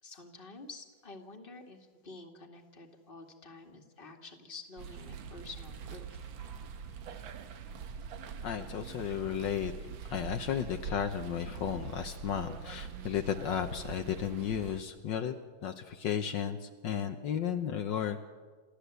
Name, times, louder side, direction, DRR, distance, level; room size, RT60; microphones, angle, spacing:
voice 1, 0.0-6.2, left 3 dB, 25° left, 3 dB, 2.1 m, -49 dB
sound 1, 4.8-14.8, right 6 dB, 80° right, 1.9 m, -43 dB
voice 2, 8.4-15.3 15.6-18.3, left 9 dB, 70° left, 6 dB, 1.6 m, -34 dB
28.5 x 13.5 x 8.1 m, 1.5 s
omnidirectional pair, 2.1 m